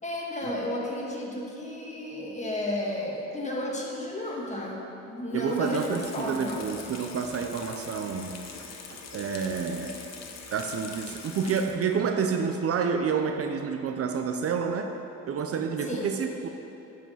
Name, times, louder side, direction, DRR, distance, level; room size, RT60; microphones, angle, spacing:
voice 1, 0.0-6.7 15.8-16.1, left 1 dB, 25° left, -2 dB, 1.7 m, -32 dB
Water tap faucet / Sink (filling or washing), 5.3-12.1 12.4-12.5, left 5 dB, 60° left, 1.0 m, -43 dB
voice 2, 5.3-8.4 8.9-10.0 10.5-14.9 15.3-16.5, right 6 dB, 50° right, 5 dB, 0.6 m, -29 dB
8.0 x 5.0 x 7.3 m, 3.0 s
cardioid pair, 90°, 30 cm